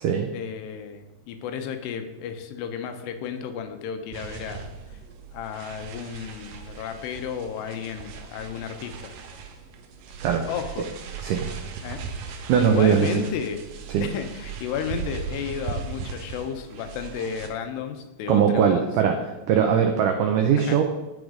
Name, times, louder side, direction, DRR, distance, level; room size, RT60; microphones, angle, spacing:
voice 1, 0.3-4.7 5.3-9.1 10.5-10.9 11.8-13.6 14.0-18.8 20.5-20.8, left 7 dB, 85° left, 7 dB, 3.1 m, -33 dB
sound 1, 4.1-17.5, right 6 dB, 70° right, 2.1 m, -38 dB
voice 2, 12.5-13.1 13.9-14.0 18.3-19.2 19.5-20.8, right 8 dB, 90° right, 4 dB, 1.8 m, -20 dB
14.5 x 4.9 x 5.0 m, 1.1 s
omnidirectional pair, 4.7 m